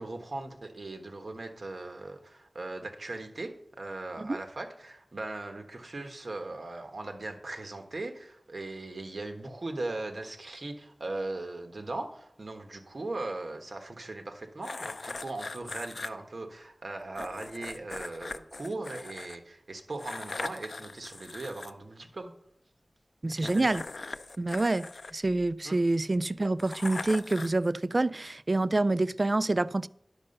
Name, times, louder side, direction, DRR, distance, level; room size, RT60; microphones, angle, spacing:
voice 1, 0.0-22.3 23.4-23.8 25.6-25.8, right 2 dB, 70° right, 1.4 m, -39 dB
sound 1, 14.6-16.1 17.2-19.4 20.0-21.7 23.3-25.7 26.6-27.7, left 3 dB, 70° left, 0.4 m, -40 dB
voice 2, 23.2-23.8 24.4-24.9 25.1-29.9, right 2 dB, 45° right, 0.3 m, -27 dB
10.5 x 6.7 x 5.4 m
wide cardioid pair, 60°, 0 cm